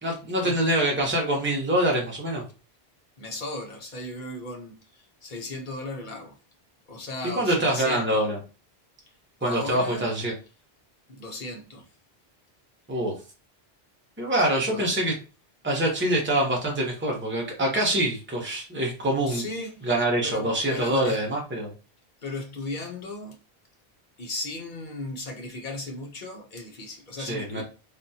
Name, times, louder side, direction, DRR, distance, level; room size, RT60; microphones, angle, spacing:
voice 1, 0.0-2.4 7.4-8.4 9.4-10.3 12.9-13.1 14.2-15.1 15.6-19.4 19.8-21.7 27.2-27.6, right 1 dB, 10° right, 0.8 m, -25 dB
voice 2, 3.2-6.3 6.9-8.2 9.4-10.2 11.1-11.9 14.7-15.1 19.3-19.8 20.2-21.2 22.2-23.4 24.2-27.6, left 2 dB, 50° left, 1.0 m, -36 dB
3.4 x 2.4 x 2.7 m
omnidirectional pair, 1.0 m